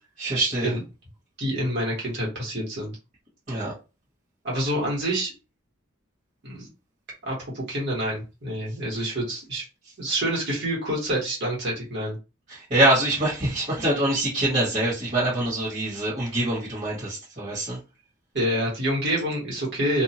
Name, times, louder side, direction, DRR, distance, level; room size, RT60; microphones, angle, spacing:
voice 1, 0.2-0.7 3.5-3.7 9.0-9.1 12.5-17.8, right 1 dB, 40° right, -8 dB, 1.5 m, -24 dB
voice 2, 1.4-3.0 4.4-5.3 6.4-6.7 7.2-9.6 10.0-12.1 18.3-20.0, right 1 dB, 60° right, -4 dB, 1.6 m, -27 dB
2.8 x 2.4 x 2.8 m, 0.29 s
head